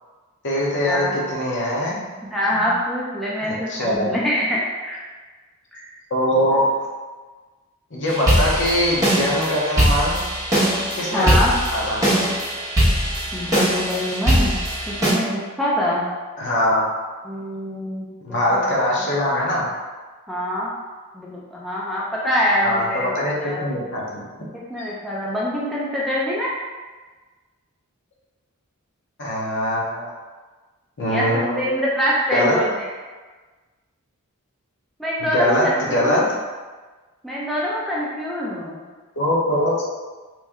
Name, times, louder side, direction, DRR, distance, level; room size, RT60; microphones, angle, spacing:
voice 1, 0.4-2.0 2.5-2.6 3.7-4.2 6.1-6.6 7.9-10.2 10.9-12.1 16.4-16.9 18.2-19.7 22.6-24.2 29.2-30.1 31.0-31.7 32.3-32.6 35.2-36.2 39.2-39.7, equal, 55° left, -4 dB, 0.8 m, -22 dB
voice 2, 2.3-5.0 5.7-5.8 11.1-11.5 13.3-14.6 14.9-16.1 17.2-18.7 20.3-20.7 21.1-23.6 24.5-26.5 31.1-32.9 35.0-36.3 37.2-38.8, equal, ahead, -7 dB, 0.4 m, -25 dB
sound 1, 8.1-15.1, equal, 15° right, 1.1 m, -21 dB
3.1 x 2.7 x 3.5 m, 1.4 s
head